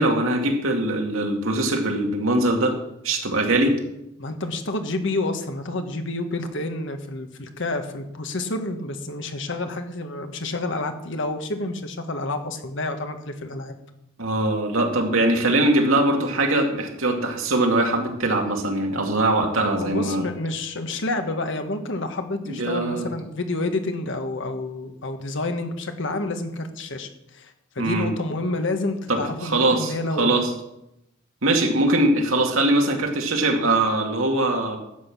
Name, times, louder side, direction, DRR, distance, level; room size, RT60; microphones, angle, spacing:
voice 1, 0.0-2.8 3.0-3.8 14.2-20.2 22.5-23.1 27.8-28.1 29.1-30.5 31.4-34.8, right 2 dB, 85° right, 2 dB, 2.3 m, -22 dB
voice 2, 4.2-13.7 19.6-30.3, left 2 dB, 65° left, 7 dB, 1.4 m, -29 dB
12.5 x 8.3 x 6.0 m, 0.84 s
head